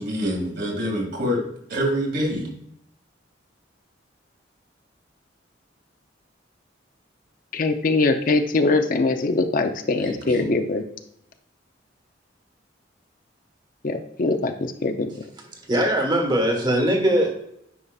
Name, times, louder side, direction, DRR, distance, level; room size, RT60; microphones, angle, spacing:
voice 1, 0.0-1.4 1.7-2.5 10.0-10.5, equal, 60° right, 0 dB, 2.2 m, -26 dB
voice 2, 7.5-10.8 13.8-15.2, left 3 dB, 45° left, 7 dB, 0.5 m, -22 dB
voice 3, 15.7-17.4, right 1 dB, 25° right, 1 dB, 1.5 m, -21 dB
9.8 x 5.6 x 2.3 m, 0.75 s
head